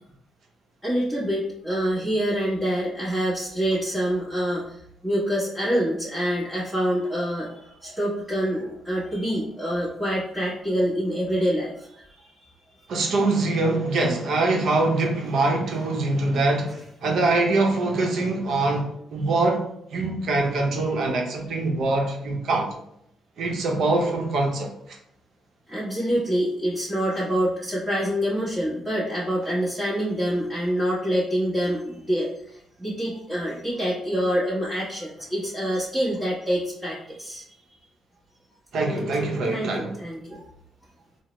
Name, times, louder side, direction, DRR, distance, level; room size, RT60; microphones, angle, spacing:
voice 1, 0.8-4.8 5.0-12.3 25.7-32.3 32.8-37.4 38.9-40.4, equal, 5° right, 1.2 m, -26 dB
voice 2, 12.9-19.6 19.9-22.7 23.4-25.0 38.7-39.9, right 2 dB, 65° right, 0.7 m, -23 dB
3.8 x 2.0 x 3.1 m
cardioid pair, 90°, 0 cm